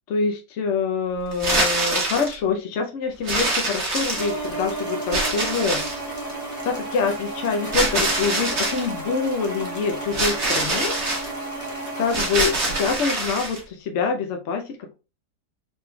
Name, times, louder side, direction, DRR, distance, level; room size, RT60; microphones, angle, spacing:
voice 1, 0.1-5.8 6.6-11.0 12.0-14.9, left 5 dB, 70° left, 4 dB, 0.7 m, -25 dB
sound 1, 1.3-2.4 3.3-4.5 5.1-6.1 7.7-8.9 10.1-11.3 12.1-13.6, right 2 dB, 45° right, 1.3 m, -24 dB
sound 2, 4.1-13.0, right 2 dB, 15° left, 0.7 m, -32 dB
4.1 x 3.5 x 2.2 m, 0.30 s
omnidirectional pair, 1.9 m